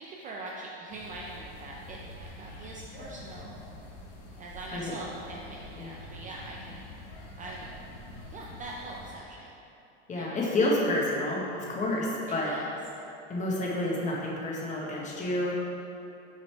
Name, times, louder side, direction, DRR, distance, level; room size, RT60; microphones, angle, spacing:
voice 1, 0.0-3.6 4.4-6.8 7.4-7.7 8.3-9.6 10.2-10.3 12.3-12.7, right 2 dB, 25° right, -2 dB, 0.4 m, -42 dB
sound 1, 0.9-9.2, left 1 dB, 85° left, 1.4 m, -46 dB
voice 2, 10.1-12.5 13.3-15.5, left 1 dB, 20° left, -3 dB, 1.2 m, -29 dB
6.2 x 4.0 x 4.6 m, 2.8 s
supercardioid pair, 125°, 34 cm